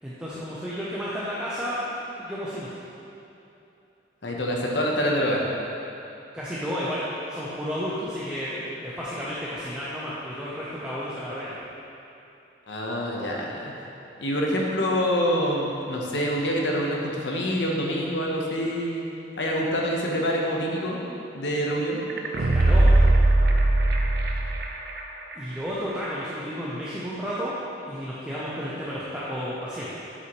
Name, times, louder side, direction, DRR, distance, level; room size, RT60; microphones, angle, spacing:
voice 1, 0.0-2.7 6.3-11.6 22.4-23.1 25.3-30.0, equal, 5° right, -9 dB, 0.7 m, -32 dB
voice 2, 4.2-5.4 12.7-13.7 14.2-19.1 19.4-21.0 21.3-22.0, equal, 75° left, -1 dB, 1.0 m, -26 dB
sound 1, 22.1-25.0 25.3-25.4, right 2 dB, 60° right, 0.6 m, -19 dB
7.8 x 6.2 x 3.1 m, 2.9 s
head